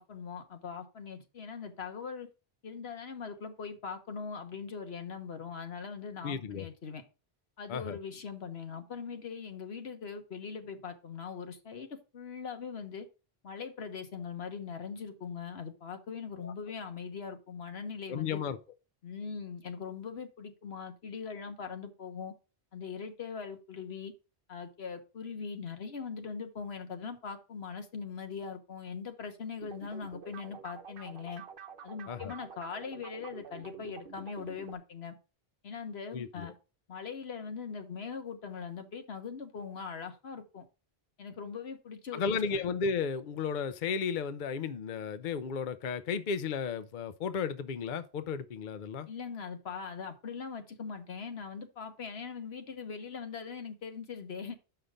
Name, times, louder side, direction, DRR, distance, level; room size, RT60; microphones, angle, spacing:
voice 1, 0.0-2.3 2.6-7.0 7.6-13.1 13.4-18.4 19.0-22.3 22.7-24.1 24.5-31.4 31.8-35.1 35.6-36.5 36.9-40.6 41.2-42.6 49.1-54.6, left 6 dB, 75° left, 1.4 m, -41 dB
voice 2, 6.2-6.7 7.7-8.0 16.4-16.5 18.1-18.6 32.1-32.3 36.1-36.5 42.1-49.1, left 6 dB, 55° left, 0.6 m, -34 dB
sound 1, 29.6-34.7, right 6 dB, 60° right, 1.0 m, -48 dB
6.8 x 5.7 x 4.9 m
omnidirectional pair, 1.1 m